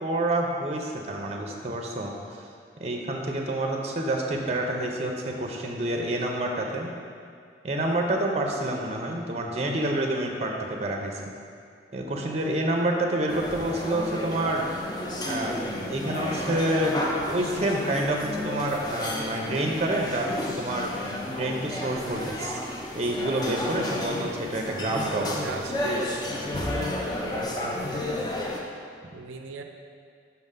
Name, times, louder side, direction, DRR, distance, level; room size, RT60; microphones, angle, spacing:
voice 1, 0.0-2.1 2.8-6.9 7.6-11.2 11.9-14.7 15.3-16.9 17.3-20.9 21.3-22.6 22.9-25.6, right 1 dB, 35° right, 1 dB, 0.5 m, -28 dB
sound 1, 13.3-28.6, left 1 dB, 20° left, 0.5 m, -32 dB
voice 2, 25.0-28.4 29.1-29.6, right 4 dB, 85° right, 4 dB, 0.4 m, -40 dB
5.7 x 3.7 x 5.4 m, 2.3 s
head